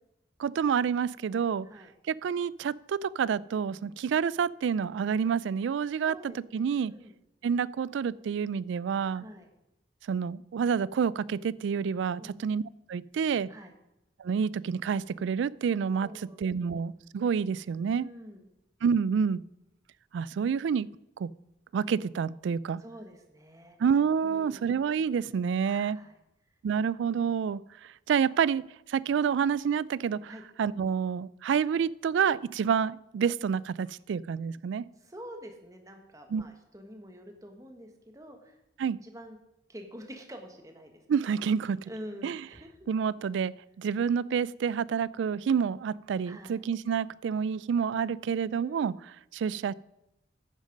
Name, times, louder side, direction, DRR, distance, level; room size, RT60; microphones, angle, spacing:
voice 1, 0.4-1.7 2.1-6.9 7.4-9.2 10.1-12.6 12.9-13.5 14.2-18.1 18.8-19.4 20.1-20.9 21.2-21.3 21.7-22.8 23.8-26.0 26.6-30.3 30.6-34.8 36.3-36.4 38.8-39.0 41.1-41.9 42.2-42.4 42.9-48.9 49.3-49.7, right 7 dB, 75° right, 22 dB, 0.3 m, -28 dB
voice 2, 6.0-7.1 9.1-9.5 12.2-12.3 13.5-13.7 16.0-16.8 18.0-18.5 22.8-23.8 24.2-24.7 25.6-26.2 30.3-30.4 35.0-38.6 39.0-39.4 39.7-41.0 41.9-42.7 46.2-46.6 48.6-49.0, equal, 15° right, 4 dB, 1.3 m, -47 dB
10.5 x 8.9 x 5.2 m, 0.88 s
head